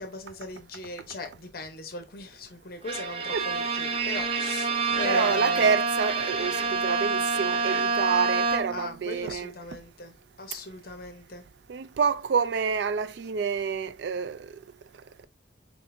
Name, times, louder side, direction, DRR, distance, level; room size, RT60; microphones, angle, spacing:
voice 1, 0.0-5.7 8.7-11.4, left 2 dB, 55° left, 0.9 m, -39 dB
Bowed string instrument, 2.9-8.9, right 4 dB, 30° right, 0.6 m, -27 dB
voice 2, 5.0-9.5 11.7-14.5, right 6 dB, 70° right, 0.4 m, -28 dB
6.2 x 2.5 x 2.6 m
head